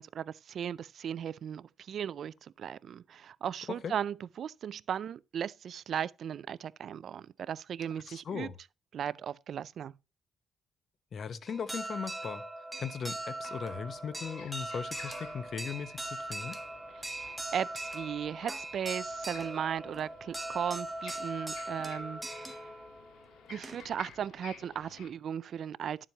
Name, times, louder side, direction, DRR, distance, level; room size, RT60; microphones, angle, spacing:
voice 1, 0.0-8.5 8.9-9.9 16.9-22.7 23.5-26.1, right 8 dB, 60° right, 0.4 m, -37 dB
voice 2, 8.1-8.5 11.1-12.4 12.8-16.6, left 6 dB, 55° left, 0.9 m, -38 dB
sound 1, 11.5-24.1, right 1 dB, 5° right, 1.6 m, -40 dB
sound 2, 13.5-25.1, left 7 dB, 85° left, 1.7 m, -54 dB
11.5 x 7.4 x 2.9 m
cardioid pair, 90°, 0 cm